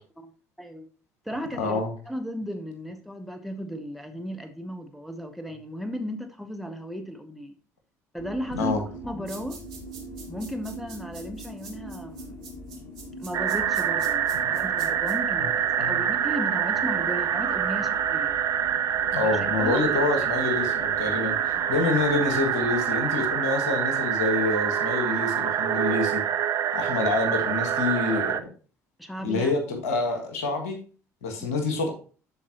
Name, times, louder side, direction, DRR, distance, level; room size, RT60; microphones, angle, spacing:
voice 1, 0.6-0.9 1.2-7.6 8.1-9.6 10.3-12.4 13.2-18.4 19.2-19.9 20.2-20.3 21.6-21.7 29.0-29.5, equal, ahead, 1.1 m, -35 dB
voice 2, 1.6-1.9 8.5-8.8 15.4-15.5 15.8-16.0 19.1-26.2 26.7-28.5 29.2-30.8 31.2-31.9, left 3 dB, 70° left, 1.6 m, -27 dB
sound 1, 8.2-23.4, equal, 35° left, 2.1 m, -44 dB
sound 2, 9.3-15.1, right 5 dB, 65° right, 2.6 m, -45 dB
sound 3, 13.3-28.4, right 9 dB, 40° right, 0.6 m, -26 dB
13.0 x 4.6 x 2.9 m
figure-of-eight pair, 55°, 8 cm